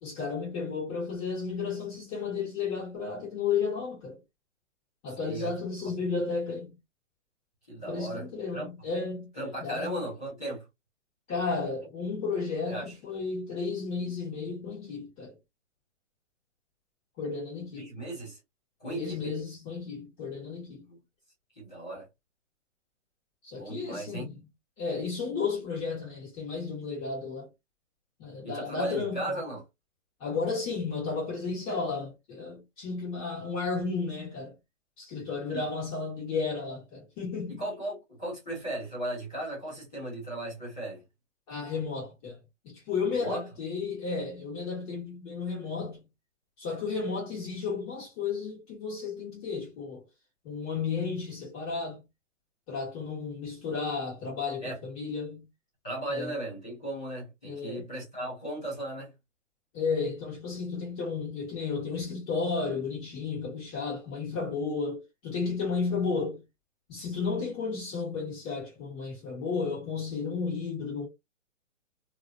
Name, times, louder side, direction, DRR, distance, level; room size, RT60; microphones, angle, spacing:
voice 1, 0.0-4.2 5.0-6.7 7.9-9.3 9.6-10.1 11.3-15.4 17.2-17.9 18.9-20.8 23.4-24.3 24.8-27.5 28.2-29.3 30.2-34.5 35.0-37.6 41.5-42.4 42.6-46.0 46.6-50.0 50.4-52.0 52.7-55.5 56.1-56.3 57.4-57.8 59.7-66.4 66.9-71.1, left 4 dB, 30° left, 1.5 m, -33 dB
voice 2, 5.2-5.5 5.8-5.9 7.7-8.2 8.5-8.9 9.3-10.7 12.7-12.9 17.8-18.4 18.8-19.3 20.8-21.0 21.6-22.1 23.5-24.3 28.4-29.6 35.5-35.7 37.6-41.0 43.1-43.4 54.6-54.8 55.8-59.1, right 1 dB, 5° left, 0.3 m, -36 dB
2.8 x 2.7 x 2.3 m
hypercardioid pair, 140°, 37 cm